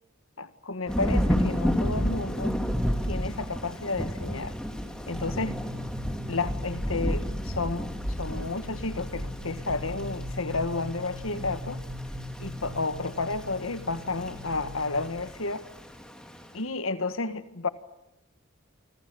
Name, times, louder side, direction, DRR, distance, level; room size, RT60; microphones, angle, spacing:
voice 1, 0.4-2.6 3.1-4.5 5.1-5.6 6.3-7.9 8.2-11.8 12.4-15.7 16.5-17.7, left 3 dB, 80° left, 12 dB, 1.7 m, -31 dB
Thunder / Rain, 0.9-16.5, equal, 5° left, 2.9 m, -32 dB
sound 1, 5.1-15.0, left 1 dB, 65° right, 3.6 m, -41 dB
30.0 x 25.5 x 6.9 m, 0.89 s
head